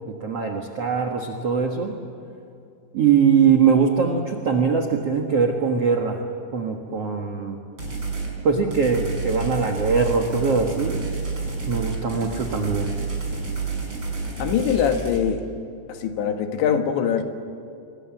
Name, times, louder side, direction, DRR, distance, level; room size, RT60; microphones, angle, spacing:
voice 1, 0.2-1.9 2.9-6.2 6.5-7.6 8.4-11.0 11.7-12.9, right 6 dB, 65° right, 2 dB, 1.5 m, -21 dB
sound 1, 7.8-8.3 8.7-15.2, right 4 dB, 25° right, 5.9 m, -29 dB
voice 2, 14.4-15.5 15.9-17.2, left 8 dB, 75° left, 5 dB, 3.8 m, -22 dB
27.5 x 23.0 x 7.2 m, 2.6 s
omnidirectional pair, 5.3 m